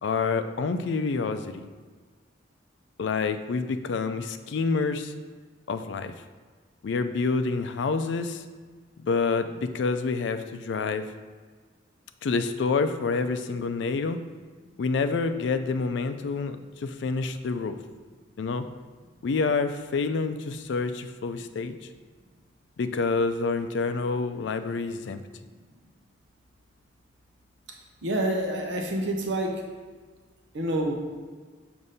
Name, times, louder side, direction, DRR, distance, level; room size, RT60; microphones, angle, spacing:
voice 1, 0.0-1.7 3.0-5.1 5.7-6.1 6.8-8.4 9.0-11.1 12.2-14.2 14.8-17.8 18.4-18.6 19.2-21.8 22.8-25.2, left 4 dB, 70° left, 9 dB, 0.4 m, -27 dB
voice 2, 28.0-29.5 30.5-30.9, right 1 dB, 75° right, 1 dB, 0.7 m, -27 dB
6.5 x 2.6 x 5.5 m, 1.5 s
head